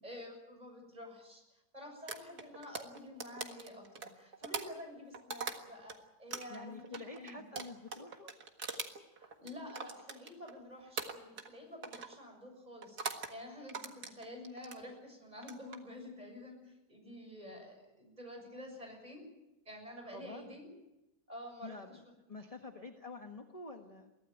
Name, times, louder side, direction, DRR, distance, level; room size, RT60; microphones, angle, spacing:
voice 1, 0.0-3.9 4.1-7.5 9.2-19.2 19.7-20.7 21.3-22.0, left 1 dB, 25° right, 2 dB, 7.0 m, -49 dB
sound 1, 2.1-6.0 6.3-10.6 11.0-11.6 11.8-12.2 12.8-13.3 13.7-14.8 15.3-15.8, right 5 dB, 80° right, 2.3 m, -42 dB
voice 2, 6.5-8.3 20.0-20.6 21.6-22.0 22.3-24.1, left 3 dB, 25° left, 4 dB, 1.4 m, -48 dB
23.5 x 16.0 x 9.1 m, 0.96 s
omnidirectional pair, 1.6 m